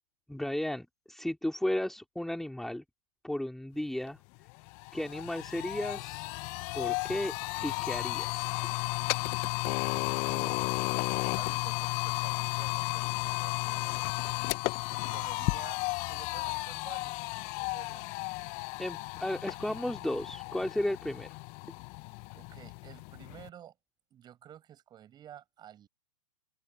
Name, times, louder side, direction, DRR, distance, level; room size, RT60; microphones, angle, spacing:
voice 1, 0.3-2.8 3.2-4.2 4.9-6.2 6.7-7.3 7.6-8.5 18.8-21.4, left 1 dB, ahead, 2.8 m, -34 dB
sound 1, 4.1-4.2 4.5-23.5, left 31 dB, 35° left, 1.1 m, -34 dB
voice 2, 10.3-10.7 11.0-14.0 14.9-15.8 16.1-18.2 22.3-23.7 24.1-25.9, right 10 dB, 25° right, 7.8 m, -52 dB
open air
figure-of-eight pair, 115°, 18 cm